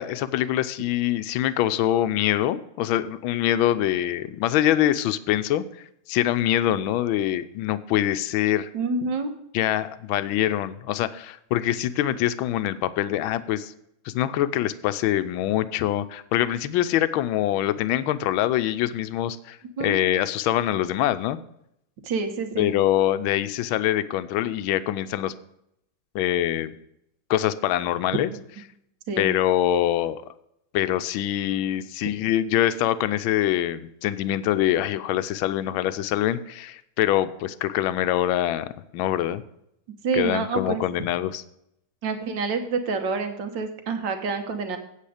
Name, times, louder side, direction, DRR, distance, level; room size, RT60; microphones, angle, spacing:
voice 1, 0.0-5.6 6.1-8.7 9.5-13.7 14.1-21.4 22.6-25.3 26.1-26.7 27.3-28.3 29.2-30.2 30.7-39.4 40.1-41.4, left 12 dB, 80° left, 13 dB, 1.4 m, -24 dB
voice 2, 8.7-9.3 19.8-20.0 22.0-22.7 29.1-29.4 40.0-40.8 42.0-44.8, right 4 dB, 60° right, 7 dB, 1.8 m, -27 dB
8.6 x 8.5 x 5.0 m, 0.77 s
omnidirectional pair, 2.3 m